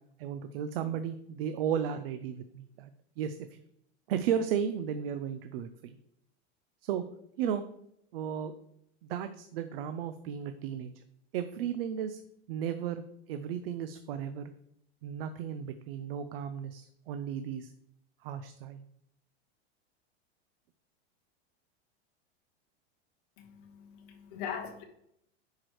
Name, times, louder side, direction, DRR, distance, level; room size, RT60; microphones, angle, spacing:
voice 1, 0.2-2.9 3.2-3.6 4.1-6.0 6.8-7.0 7.4-7.6 8.1-8.5 9.0-10.9 11.3-12.2 12.5-13.0 13.3-14.5 15.0-17.7 18.2-18.9, right 8 dB, 60° right, 10 dB, 0.5 m, -34 dB
voice 2, 23.4-24.8, left 7 dB, 50° left, 1 dB, 1.3 m, -41 dB
10.5 x 4.7 x 3.1 m, 0.75 s
supercardioid pair, 170°, 34 cm